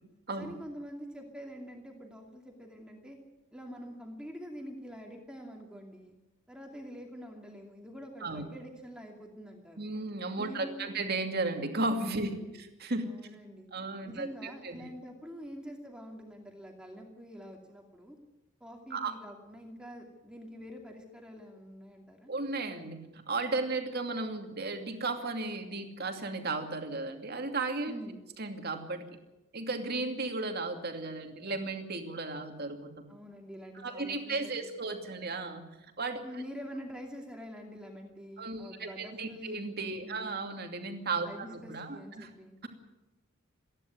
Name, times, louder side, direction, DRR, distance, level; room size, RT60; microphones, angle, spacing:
voice 1, 0.4-3.2 3.5-6.1 6.5-9.9 10.4-10.9 12.2-12.5 13.0-13.7 14.0-18.2 18.6-22.3 27.9-28.2 33.1-34.9 36.2-39.6 40.0-40.3 41.2-42.6, equal, 5° right, 1 dB, 2.6 m, -46 dB
voice 2, 9.8-12.3 12.8-13.1 13.7-14.8 18.9-19.1 22.3-27.9 28.4-29.2 29.5-32.9 33.8-35.6 36.0-36.2 38.4-42.3, right 3 dB, 50° right, 4 dB, 2.6 m, -35 dB
28.0 x 11.0 x 9.7 m, 1.0 s
head